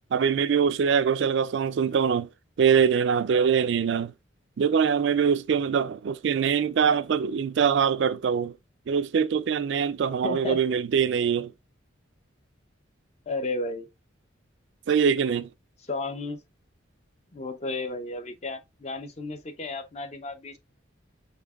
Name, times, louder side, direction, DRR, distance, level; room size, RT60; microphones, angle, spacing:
voice 1, 0.1-2.3 2.6-4.1 4.6-8.5 8.9-11.5 14.9-15.5, right 7 dB, 65° right, 0.3 m, -23 dB
voice 2, 10.2-10.6 13.3-13.9 15.9-16.4 17.3-20.6, left 2 dB, 35° left, 0.5 m, -33 dB
5.6 x 3.5 x 2.3 m
head